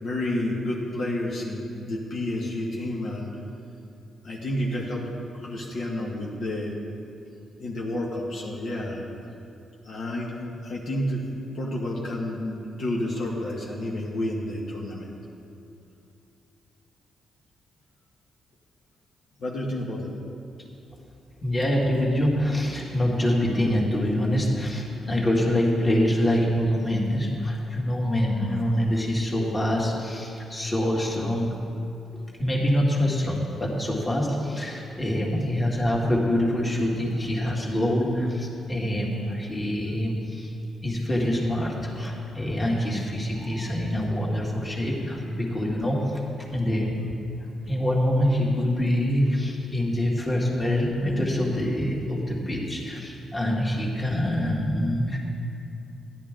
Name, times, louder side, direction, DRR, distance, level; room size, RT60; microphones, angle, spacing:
voice 1, 0.0-3.3 4.2-5.1 5.3-6.8 7.6-9.1 9.8-11.3 11.5-15.1 19.4-20.1 35.3-35.5 37.4-37.5 39.9-40.0, left 1 dB, 65° left, -3 dB, 1.4 m, -30 dB
voice 2, 21.4-31.5 32.4-40.5 40.8-46.0 46.5-47.0 47.7-55.2, left 1 dB, 25° left, -3 dB, 2.2 m, -25 dB
13.5 x 10.5 x 3.8 m, 2.6 s
cardioid pair, 95°, 0 cm